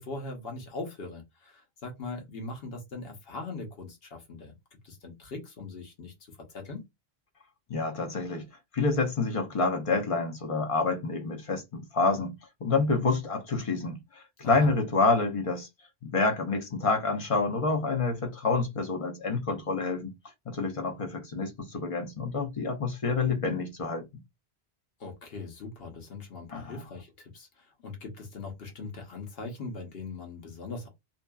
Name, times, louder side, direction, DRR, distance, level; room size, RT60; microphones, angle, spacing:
voice 1, 0.0-4.5 4.8-6.9 14.4-14.7 25.0-30.9, left 3 dB, 65° left, 1.0 m, -41 dB
voice 2, 7.7-8.5 8.7-12.4 12.6-15.7 16.0-20.2 20.5-24.0 26.5-26.8, left 3 dB, 40° left, 0.6 m, -28 dB
2.7 x 2.3 x 2.2 m
omnidirectional pair, 1.1 m